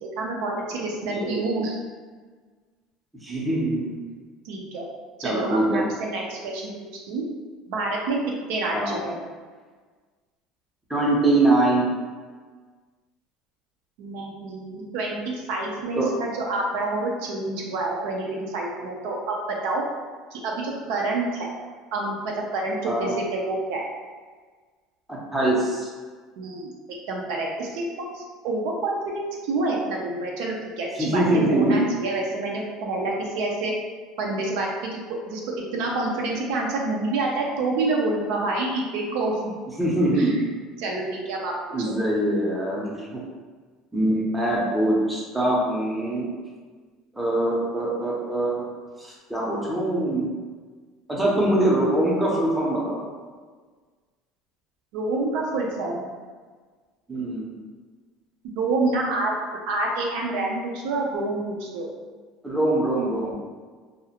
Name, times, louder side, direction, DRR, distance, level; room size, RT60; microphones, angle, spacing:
voice 1, 0.0-1.8 4.4-4.9 5.2-6.7 7.1-7.3 7.7-8.2 8.5-9.2 14.0-19.8 20.3-21.5 21.9-23.8 26.4-26.7 27.1-33.7 34.2-34.7 35.1-39.5 40.2-40.4 40.8-41.5 41.9-42.0 54.9-56.0 58.5-59.4 59.7-61.9, right 2 dB, 80° right, -1 dB, 0.5 m, -28 dB
voice 2, 1.1-1.5 3.2-4.0 5.2-5.8 8.7-9.0 10.9-11.9 16.0-16.1 22.8-23.1 25.1-25.9 31.0-31.9 39.8-40.4 41.7-43.2 43.9-46.3 47.1-48.7 49.0-50.2 51.1-53.1 57.1-57.5 62.4-63.3, right 1 dB, 5° right, -5 dB, 0.6 m, -23 dB
2.4 x 2.0 x 2.8 m, 1.5 s
cardioid pair, 130°, 0 cm